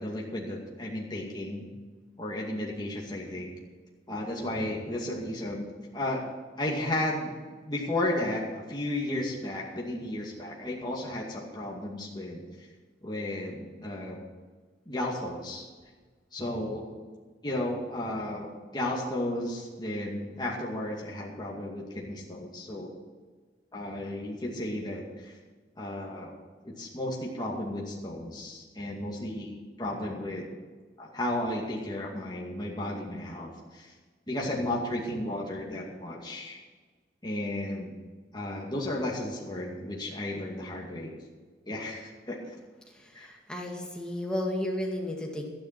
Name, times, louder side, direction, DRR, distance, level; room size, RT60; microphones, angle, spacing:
voice 1, 0.0-1.7 2.2-3.5 4.1-5.7 5.9-6.2 6.6-7.3 7.7-12.7 13.0-14.2 14.9-15.7 16.3-16.8 17.4-22.9 23.7-25.3 25.8-26.3 26.6-30.5 31.0-33.9 34.3-36.6 37.2-37.9 38.3-41.2 41.7-42.4 43.1-43.3, left 1 dB, 25° left, -3 dB, 2.2 m, -33 dB
voice 2, 42.9-45.5, left 1 dB, 5° left, 0 dB, 2.1 m, -33 dB
13.0 x 10.5 x 6.0 m, 1.4 s
head